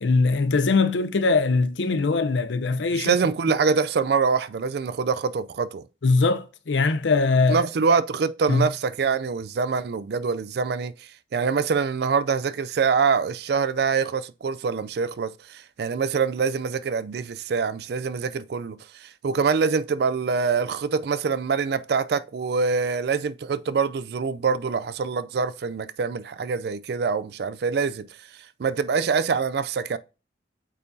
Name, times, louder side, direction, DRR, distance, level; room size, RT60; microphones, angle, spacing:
voice 1, 0.0-3.1 6.0-7.6 8.5-8.7, left 3 dB, 85° left, 0.6 m, -21 dB
voice 2, 2.9-5.8 7.5-10.9 11.3-28.1 28.6-30.0, right 5 dB, 60° right, 0.4 m, -25 dB
8.1 x 4.4 x 2.7 m
head